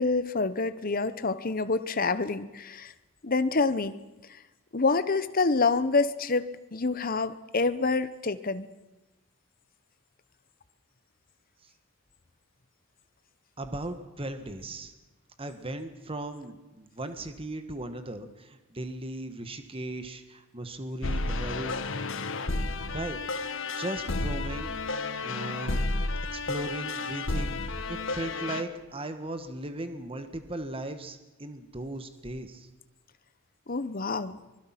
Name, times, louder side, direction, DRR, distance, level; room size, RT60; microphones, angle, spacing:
voice 1, 0.0-2.9 3.2-3.9 4.7-8.7 33.7-34.4, left 3 dB, 40° left, 12 dB, 1.0 m, -27 dB
voice 2, 13.6-14.9 15.4-21.9 22.9-23.2 23.7-24.7 25.2-25.9 26.3-27.6 27.9-32.7, right 1 dB, 25° right, 8 dB, 1.5 m, -37 dB
sound 1, 21.0-28.6, left 3 dB, 60° left, 1.2 m, -32 dB
24.5 x 21.0 x 5.9 m, 1.1 s
head